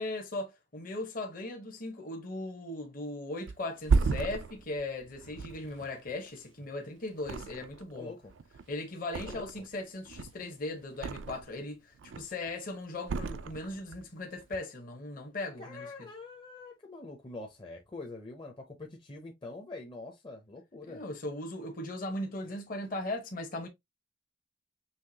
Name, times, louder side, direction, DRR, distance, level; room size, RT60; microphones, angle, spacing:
voice 1, 0.0-8.1 8.7-15.9 20.9-23.7, left 2 dB, 45° left, 1.0 m, -38 dB
Thump thud, 3.5-6.7 7.2-8.0 8.2-9.7 10.0-11.6 12.0-12.5 13.0-14.0 14.4-14.6, right 4 dB, 80° right, 0.4 m, -33 dB
voice 2, 7.9-8.3 9.2-9.7 15.6-21.0, left 3 dB, 25° left, 0.7 m, -45 dB
5.7 x 3.0 x 2.8 m
head